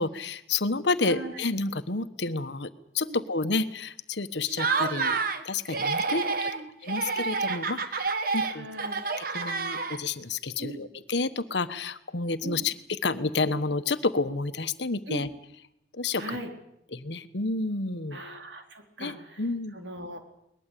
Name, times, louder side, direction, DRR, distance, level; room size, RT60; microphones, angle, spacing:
voice 1, 0.0-5.2 5.4-6.5 6.8-8.7 9.2-15.3 15.9-16.4 16.9-18.2 19.0-19.7, left 3 dB, 65° left, 11 dB, 1.2 m, -30 dB
voice 2, 1.0-1.4 3.1-3.2 6.1-6.7 8.5-9.0 10.6-10.9 12.4-12.6 15.1-15.3 16.2-16.5 18.1-19.5 19.7-20.2, right 1 dB, 70° right, 4 dB, 4.1 m, -39 dB
Laughter, 4.5-5.4 5.7-6.6 6.9-10.2, right 4 dB, 50° right, 1.6 m, -29 dB
22.0 x 20.0 x 8.4 m, 0.78 s
head